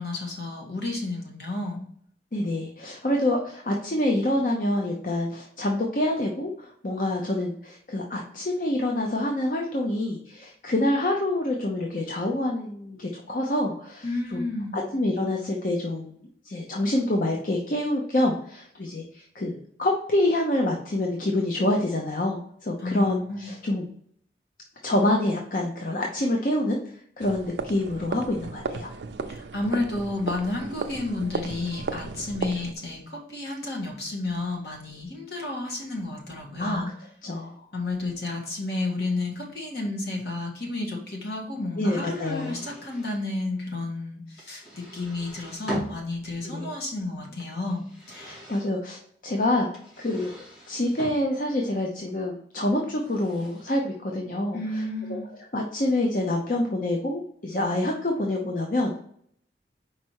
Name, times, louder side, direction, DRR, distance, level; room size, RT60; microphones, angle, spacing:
voice 1, 0.0-1.8 14.0-14.8 22.8-23.5 29.3-36.9 37.7-48.4 54.5-55.3, left 2 dB, 65° left, -1 dB, 1.7 m, -31 dB
voice 2, 2.3-14.4 14.7-23.9 24.8-28.9 36.6-36.8 37.2-37.6 41.8-42.6 46.4-46.7 48.3-49.7 50.0-50.3 50.7-54.8 55.1-55.2 55.5-59.0, left 1 dB, 50° left, 0 dB, 0.7 m, -27 dB
sound 1, 27.2-32.7, right 4 dB, 85° right, 0.5 m, -35 dB
sound 2, 41.9-43.2 44.4-46.2 47.2-48.7 49.7-51.2 52.8-53.7, equal, 85° left, 2.6 m, -40 dB
5.0 x 4.3 x 4.6 m, 0.64 s
head